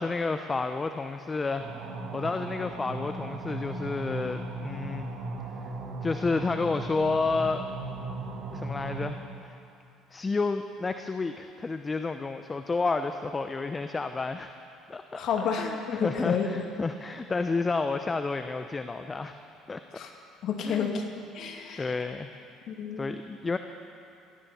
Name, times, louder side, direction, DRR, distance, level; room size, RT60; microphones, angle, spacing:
voice 1, 0.0-5.1 5.6-5.7 6.0-7.6 8.5-9.6 10.1-14.5 14.9-15.2 15.6-19.4 19.7-19.8 20.6-21.0 21.8-22.4 23.0-23.6, left 3 dB, 25° left, 8 dB, 0.8 m, -30 dB
sound 1, 1.6-9.1, right 2 dB, 60° right, 2.4 m, -37 dB
voice 2, 15.1-16.5 19.9-20.1 20.4-21.1 21.3-21.9 22.7-23.0, left 6 dB, 55° left, 2 dB, 2.3 m, -30 dB
19.5 x 17.0 x 4.3 m, 2.6 s
hypercardioid pair, 60°, 0 cm